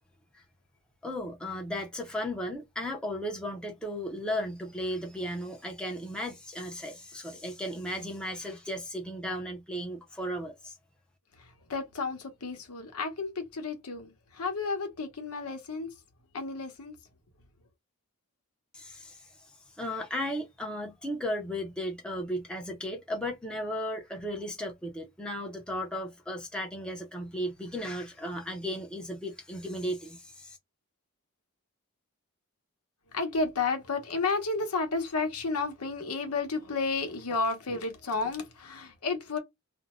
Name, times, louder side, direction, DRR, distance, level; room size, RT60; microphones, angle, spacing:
voice 1, 1.0-10.8 18.7-19.3 19.8-30.6, equal, 5° left, 0.6 m, -35 dB
voice 2, 11.7-15.9 16.3-16.9 33.1-39.4, left 4 dB, 85° left, 0.9 m, -32 dB
2.5 x 2.2 x 2.9 m
head